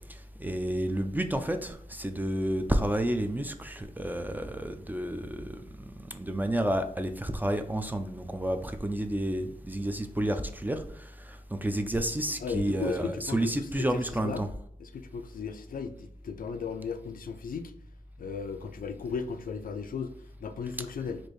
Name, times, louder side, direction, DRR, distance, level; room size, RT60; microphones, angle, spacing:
voice 1, 0.1-14.5, right 1 dB, 10° right, 0.4 m, -31 dB
voice 2, 12.4-14.4 14.8-17.7 18.2-20.1 20.4-21.2, left 6 dB, 70° left, 0.4 m, -36 dB
4.3 x 2.5 x 3.1 m
wide cardioid pair, 75°, 15 cm